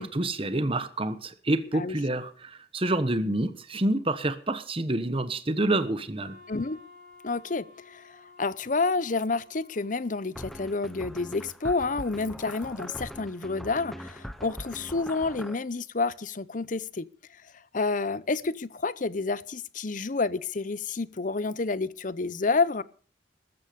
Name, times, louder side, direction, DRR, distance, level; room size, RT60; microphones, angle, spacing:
voice 1, 0.0-6.4, right 1 dB, 30° right, 1.2 m, -28 dB
Wind instrument woodwind instrument, 6.1-10.8, left 3 dB, 55° right, 4.4 m, -54 dB
voice 2, 6.5-6.8 7.2-17.1 17.7-22.8, left 3 dB, 45° left, 0.7 m, -29 dB
sound 1, 10.4-15.6, equal, ahead, 1.0 m, -41 dB
15.5 x 14.0 x 5.2 m
head